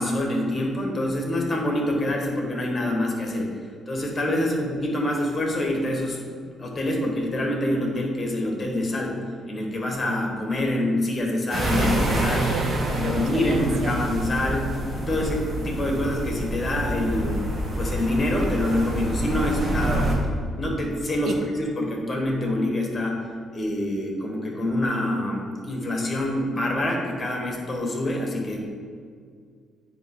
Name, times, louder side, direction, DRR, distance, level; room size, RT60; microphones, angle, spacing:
voice 1, 0.0-3.5 3.9-6.2 6.6-9.1 9.5-17.4 17.7-23.2 23.5-28.7, left 1 dB, 30° left, 0 dB, 1.5 m, -26 dB
voice 2, 4.3-4.6 12.5-13.9 19.8-20.2 21.2-21.4, right 4 dB, 70° right, 5 dB, 0.6 m, -31 dB
sound 1, 11.5-20.1, right 1 dB, 45° right, 1.6 m, -27 dB
9.0 x 3.0 x 4.6 m, 2.1 s
cardioid pair, 90°, 0 cm